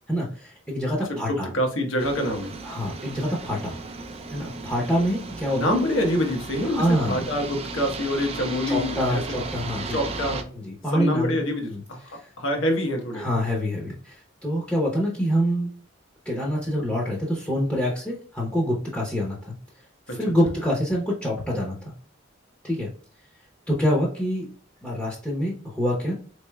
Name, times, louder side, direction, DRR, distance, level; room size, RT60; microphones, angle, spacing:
voice 1, 0.1-1.5 2.6-3.7 4.3-5.8 6.6-7.3 8.7-10.3 10.5-11.4 11.7-12.3 13.1-15.7 16.2-19.5 20.1-21.9 22.6-22.9 23.7-24.5 24.8-26.1, equal, 10° left, -3 dB, 0.7 m, -26 dB
voice 2, 1.1-2.5 5.5-9.2 9.9-10.5 10.9-12.0 12.4-13.3 20.1-20.2, left 1 dB, 80° left, 3 dB, 1.0 m, -26 dB
sound 1, 2.0-10.4, right 3 dB, 30° right, 0.4 m, -35 dB
4.2 x 3.2 x 2.2 m, 0.43 s
head